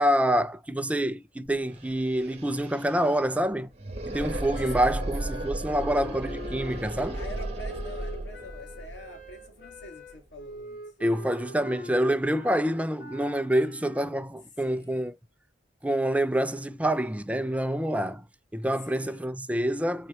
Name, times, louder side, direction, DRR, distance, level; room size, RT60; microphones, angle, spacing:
voice 1, 0.0-3.7 4.1-7.2 11.0-15.1 15.8-18.2 18.5-20.1, right 1 dB, 10° right, 0.5 m, -27 dB
sound 1, 1.5-1.6 1.8-10.6, right 1 dB, 35° right, 1.5 m, -36 dB
sound 2, 4.5-14.2, left 1 dB, 50° left, 1.9 m, -43 dB
voice 2, 4.6-5.1 7.1-10.8 14.6-15.1 18.8-19.3, left 1 dB, 80° left, 2.3 m, -45 dB
6.3 x 4.3 x 4.2 m
head